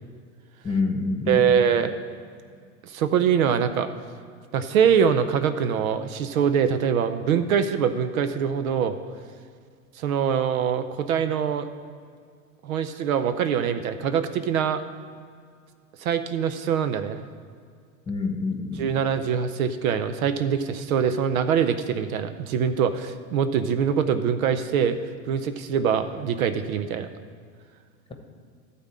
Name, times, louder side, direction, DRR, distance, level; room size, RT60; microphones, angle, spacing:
voice 1, 0.6-1.6 18.1-19.0, left 3 dB, 10° left, 3 dB, 1.2 m, -27 dB
voice 2, 1.3-1.9 2.8-3.9 4.5-9.0 10.0-11.7 12.6-14.8 16.0-17.2 18.8-25.0 25.3-27.1, right 7 dB, 70° right, 10 dB, 0.7 m, -23 dB
12.5 x 4.2 x 7.4 m, 2.1 s
hypercardioid pair, 90°, 44 cm